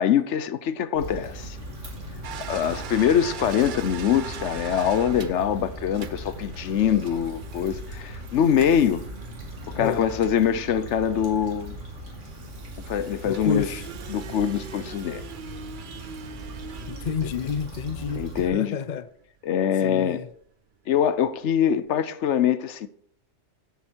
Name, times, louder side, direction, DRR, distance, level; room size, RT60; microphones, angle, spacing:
voice 1, 0.0-1.6 2.5-9.0 9.7-11.8 12.9-13.8 14.1-15.3 18.1-18.8 19.4-20.2 20.9-22.9, left 9 dB, 75° left, 1.0 m, -24 dB
Stream / Traffic noise roadway noise / Trickle dribble, 1.0-18.5, equal, 85° right, 3.2 m, -39 dB
sound 1, 2.2-11.6 12.2-18.2 19.6-19.7 20.1-20.2 21.3-21.4 21.6-21.8, right 7 dB, 50° right, 0.7 m, -41 dB
voice 2, 13.2-13.8 16.9-18.2 18.5-19.0 19.8-20.3, left 6 dB, 50° left, 0.7 m, -29 dB
14.0 x 7.7 x 4.5 m
omnidirectional pair, 1.2 m